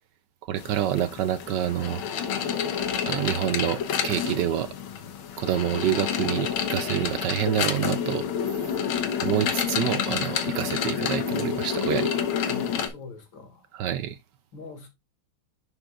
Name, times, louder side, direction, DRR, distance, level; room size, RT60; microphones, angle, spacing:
voice 1, 0.4-2.0 3.1-4.7 5.4-8.7 9.2-12.1 13.7-14.2, right 11 dB, 75° right, 1.1 m, -27 dB
sound 1, 0.6-12.9, left 8 dB, 90° left, 1.9 m, -29 dB
voice 2, 12.5-13.6 14.5-14.9, left 4 dB, 75° left, 2.8 m, -43 dB
11.0 x 5.1 x 2.4 m
omnidirectional pair, 2.2 m